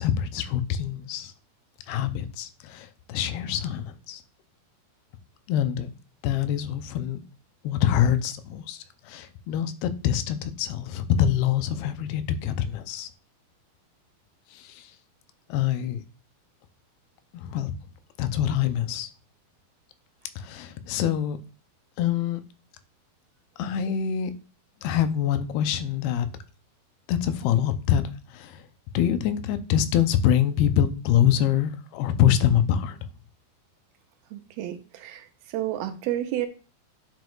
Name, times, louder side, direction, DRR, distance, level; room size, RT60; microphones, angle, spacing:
voice 1, 0.0-1.3 1.9-4.2 5.5-5.9 6.2-7.2 7.6-13.1 14.5-14.9 15.5-16.0 17.3-17.7 18.2-19.1 20.4-21.4 22.0-22.4 23.6-24.3 24.8-26.3 27.1-28.6 28.9-33.0, left 10 dB, 90° left, 2.7 m, -25 dB
voice 2, 34.3-35.2 35.5-36.5, right 12 dB, 85° right, 2.5 m, -30 dB
9.3 x 6.1 x 2.4 m
omnidirectional pair, 4.4 m